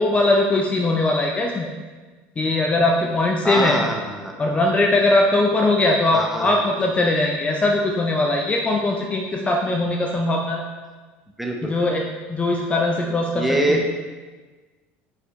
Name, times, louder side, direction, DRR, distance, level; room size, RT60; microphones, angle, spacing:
voice 1, 0.0-1.7 2.4-3.8 4.4-10.6 11.6-13.8, left 2 dB, 20° left, 0 dB, 0.6 m, -20 dB
voice 2, 3.4-4.3 6.1-6.5 11.4-11.7 13.3-13.8, right 1 dB, 5° right, 1 dB, 0.9 m, -23 dB
5.9 x 5.7 x 3.1 m, 1.3 s
supercardioid pair, 110°, 6 cm